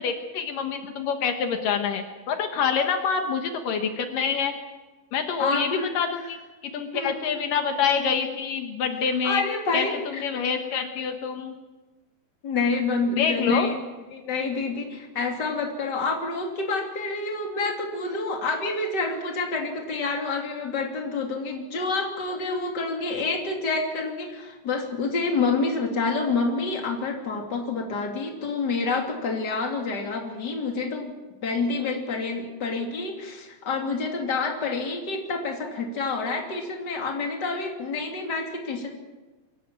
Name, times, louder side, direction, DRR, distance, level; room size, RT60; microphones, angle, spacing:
voice 1, 0.0-4.5 5.1-6.4 6.7-9.4 9.7-11.5 13.2-13.7, left 6 dB, 75° left, 6 dB, 3.0 m, -26 dB
voice 2, 5.4-6.0 6.9-7.3 9.2-10.2 12.4-13.8 14.1-31.1 31.4-38.9, left 3 dB, 30° left, 2 dB, 3.2 m, -28 dB
24.0 x 14.5 x 8.9 m, 1.2 s
omnidirectional pair, 4.0 m